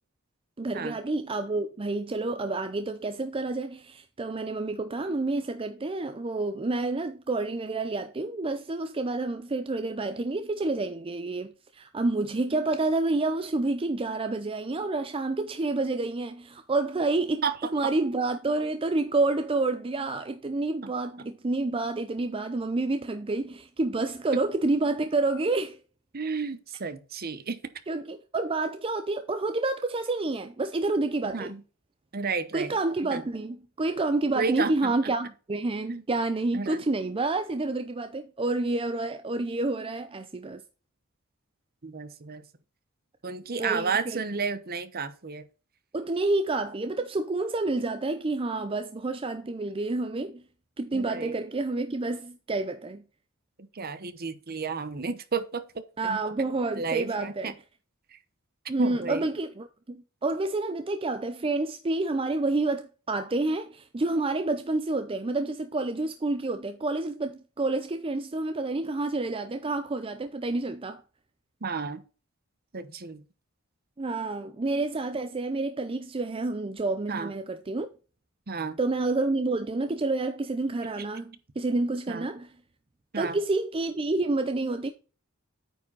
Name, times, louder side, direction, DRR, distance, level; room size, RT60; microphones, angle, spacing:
voice 1, 0.6-17.4 17.7-25.8 27.9-31.5 32.5-40.6 43.6-44.2 45.9-50.4 50.8-53.0 56.0-57.5 58.7-71.0 74.0-77.9 78.8-82.5 83.2-84.9, right 2 dB, 25° right, 0.5 m, -29 dB
voice 2, 26.1-27.6 31.3-31.6 32.1-32.7 33.1-33.2 34.4-34.9 35.9-36.0 36.5-36.8 41.8-42.4 43.2-45.4 50.9-51.4 53.6-55.6 56.0-56.2 56.8-57.5 58.8-59.3 71.6-72.0 72.7-73.2 77.1-77.3 78.5-78.8 82.1-82.2 83.1-83.4, right 5 dB, 45° right, 0.9 m, -32 dB
9.1 x 4.9 x 4.0 m
head